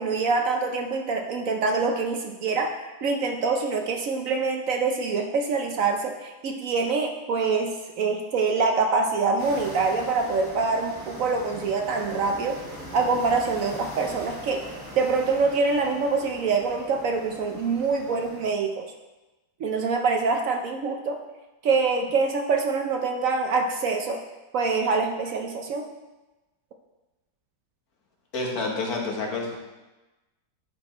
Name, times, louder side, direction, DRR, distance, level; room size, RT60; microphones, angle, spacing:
voice 1, 0.0-12.6 12.9-14.6 15.0-18.9 19.6-21.2 21.6-24.2 24.5-25.9, right 4 dB, 65° right, 3 dB, 1.0 m, -25 dB
sound 1, 9.4-18.5, equal, 10° right, 1.2 m, -41 dB
voice 2, 28.3-29.6, left 3 dB, 65° left, 0 dB, 1.7 m, -28 dB
10.5 x 4.5 x 4.3 m, 1.1 s
omnidirectional pair, 1.7 m